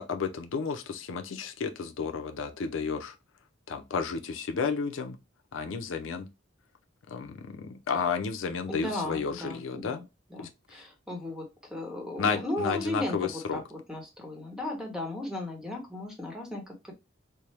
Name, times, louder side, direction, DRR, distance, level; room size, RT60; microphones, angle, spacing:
voice 1, 0.0-3.1 3.7-5.2 5.5-6.3 7.1-10.0 10.4-10.5 12.2-13.6, left 5 dB, 80° left, 0.5 m, -32 dB
voice 2, 8.7-10.0 10.3-11.4 11.7-16.9, left 2 dB, 5° right, 0.9 m, -36 dB
4.3 x 2.0 x 3.2 m
head